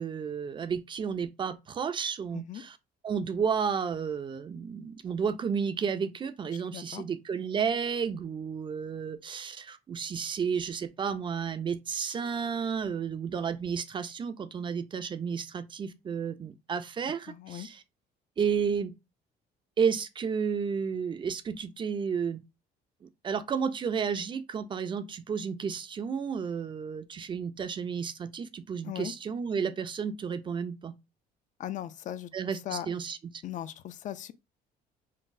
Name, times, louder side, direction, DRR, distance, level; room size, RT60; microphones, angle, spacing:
voice 1, 0.0-2.8 3.0-17.8 18.4-18.9 19.8-22.4 23.0-30.9 32.3-33.2, right 6 dB, 30° right, 0.4 m, -32 dB
voice 2, 6.7-7.0 17.3-17.7 28.8-29.1 31.6-32.9 33.4-34.3, left 11 dB, 50° left, 0.4 m, -38 dB
3.9 x 2.1 x 2.5 m
cardioid pair, 110°, 17 cm